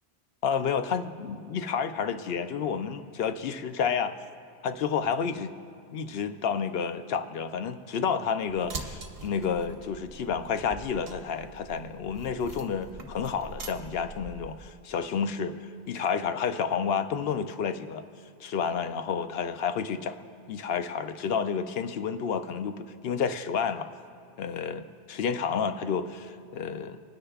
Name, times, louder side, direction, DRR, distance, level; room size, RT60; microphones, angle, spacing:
voice 1, 0.4-4.1 4.6-5.5 5.9-15.5 15.9-18.0 18.4-20.2 20.5-23.9 24.4-27.0, left 6 dB, 70° left, 9 dB, 0.8 m, -30 dB
sound 1, 8.5-14.7, right 3 dB, 65° right, 1.2 m, -43 dB
27.0 x 9.9 x 2.3 m, 2.6 s
omnidirectional pair, 1.1 m